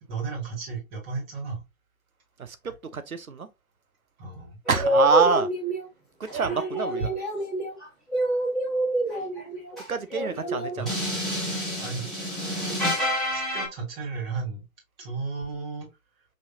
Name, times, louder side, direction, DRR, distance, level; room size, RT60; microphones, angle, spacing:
voice 1, 0.1-1.6 4.2-4.6 10.8-10.9 11.7-12.1 13.3-14.6 15.0-15.9, right 4 dB, 15° right, 1.4 m, -34 dB
voice 2, 2.4-3.5 4.7-5.5 6.2-7.1 9.9-11.0, right 5 dB, 85° right, 0.8 m, -26 dB
sound 1, 4.7-5.9 6.3-13.7, equal, ahead, 0.8 m, -27 dB
5.4 x 2.9 x 2.7 m
figure-of-eight pair, 145°, 41 cm